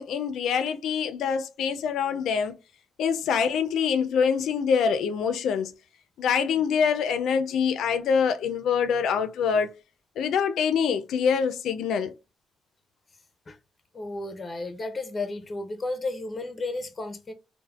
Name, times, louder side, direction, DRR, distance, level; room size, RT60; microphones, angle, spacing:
voice 1, 0.0-2.6 3.0-5.7 6.2-9.7 10.2-12.1, left 6 dB, 85° left, 0.3 m, -25 dB
voice 2, 13.9-17.3, left 2 dB, 30° left, 0.5 m, -33 dB
3.2 x 2.0 x 2.2 m
cardioid pair, 100°, 0 cm